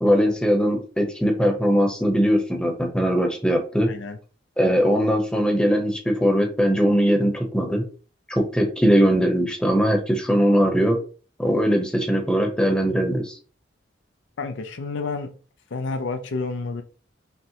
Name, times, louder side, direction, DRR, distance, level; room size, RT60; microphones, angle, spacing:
voice 1, 0.0-3.9 4.6-7.8 8.3-11.0 11.4-13.4, equal, 5° left, 2 dB, 0.7 m, -20 dB
voice 2, 3.9-4.2 14.4-15.4 15.7-16.8, left 3 dB, 75° left, 7 dB, 0.5 m, -29 dB
5.6 x 2.1 x 2.8 m, 0.38 s
head